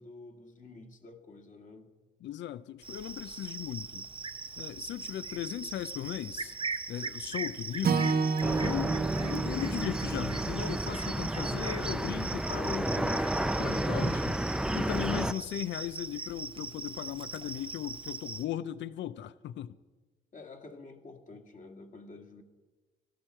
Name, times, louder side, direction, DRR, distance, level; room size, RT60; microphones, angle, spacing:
voice 1, 0.0-1.9 20.3-22.4, left 3 dB, 40° left, 3 dB, 2.0 m, -50 dB
voice 2, 2.2-4.1 4.6-6.6 6.9-8.1 8.6-14.4 14.7-19.8, left 11 dB, 65° left, 16 dB, 0.5 m, -37 dB
Cricket, 2.8-18.4, right 4 dB, 25° right, 0.8 m, -41 dB
Acoustic guitar / Strum, 7.8-12.1, right 5 dB, 50° right, 1.0 m, -32 dB
sound 1, 8.4-15.3, right 1 dB, 5° right, 0.5 m, -31 dB
16.5 x 13.5 x 4.4 m, 1.3 s
cardioid pair, 90°, 20 cm